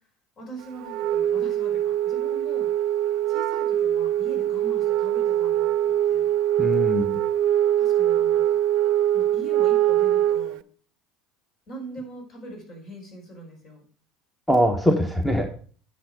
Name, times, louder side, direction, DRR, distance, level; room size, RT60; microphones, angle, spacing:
voice 1, 0.4-2.7 3.3-6.3 7.8-8.4 9.1-10.6 11.7-13.8, right 1 dB, 50° left, 0 dB, 5.3 m, -41 dB
Wind instrument woodwind instrument, 0.8-10.6, right 11 dB, 60° right, 0.4 m, -23 dB
voice 2, 6.6-7.2 14.5-15.5, equal, 5° left, 6 dB, 1.2 m, -22 dB
10.5 x 6.5 x 5.0 m, 0.44 s
hypercardioid pair, 70°, 0 cm